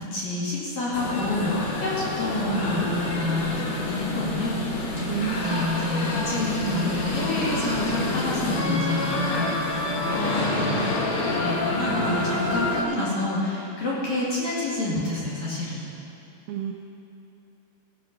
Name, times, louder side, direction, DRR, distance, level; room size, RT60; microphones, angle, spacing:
voice 1, 0.0-10.9 11.3-15.8, left 2 dB, 50° left, -7 dB, 2.8 m, -28 dB
sound 1, 0.9-12.8, left 2 dB, 80° left, 1.6 m, -27 dB
voice 2, 5.1-5.5 16.5-16.7, right 10 dB, 85° right, 2 dB, 2.2 m, -29 dB
Cricket, 5.4-11.4, right 1 dB, 5° left, 1.5 m, -46 dB
16.5 x 6.9 x 5.9 m, 2.9 s
omnidirectional pair, 5.2 m